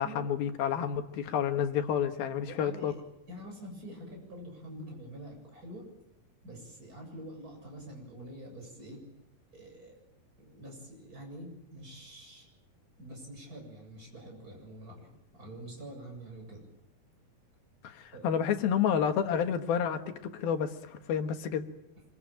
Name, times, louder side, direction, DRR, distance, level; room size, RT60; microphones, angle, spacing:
voice 1, 0.0-2.9 17.8-21.7, left 8 dB, 80° left, 7 dB, 3.4 m, -30 dB
voice 2, 2.4-2.9 3.3-5.9 6.4-9.0 9.5-9.9 10.4-12.5 13.0-16.6 18.1-18.3, right 1 dB, 20° right, 1 dB, 8.0 m, -46 dB
25.5 x 22.5 x 9.1 m, 0.84 s
omnidirectional pair, 4.2 m